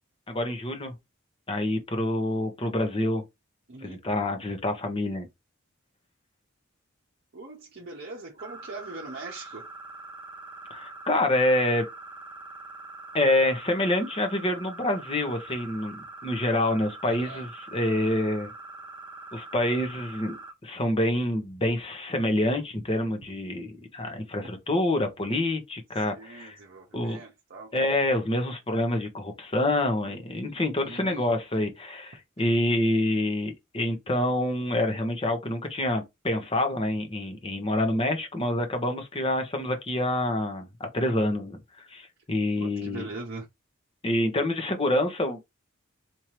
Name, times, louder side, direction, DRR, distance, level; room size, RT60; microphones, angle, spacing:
voice 1, 0.3-0.9 1.5-3.2 3.8-5.3 10.7-11.9 13.1-18.5 19.3-26.6 26.9-27.2 27.7-41.6 41.9-43.1 44.0-45.4, left 1 dB, 25° left, 0.9 m, -27 dB
voice 2, 7.3-9.7 17.0-17.5 25.9-27.7 30.8-31.4 42.6-43.5, right 3 dB, 55° right, 0.8 m, -41 dB
sound 1, 8.4-20.5, right 3 dB, 25° right, 1.0 m, -44 dB
4.4 x 2.7 x 3.0 m
head